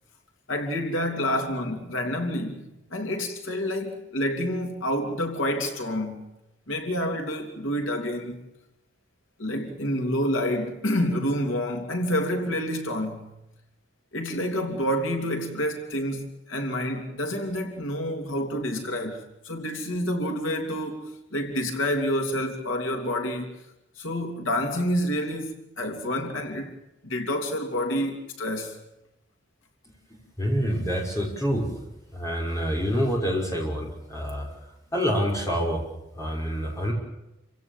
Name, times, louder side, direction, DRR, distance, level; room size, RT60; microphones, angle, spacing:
voice 1, 0.5-6.3 6.7-8.4 9.4-13.4 14.1-23.6 24.0-26.7 27.0-28.8, equal, 80° left, 3.2 m, -28 dB
voice 2, 30.4-31.8 32.1-34.5 34.9-35.8 36.1-36.9, equal, 15° left, 5.8 m, -27 dB
28.5 x 16.5 x 7.3 m
head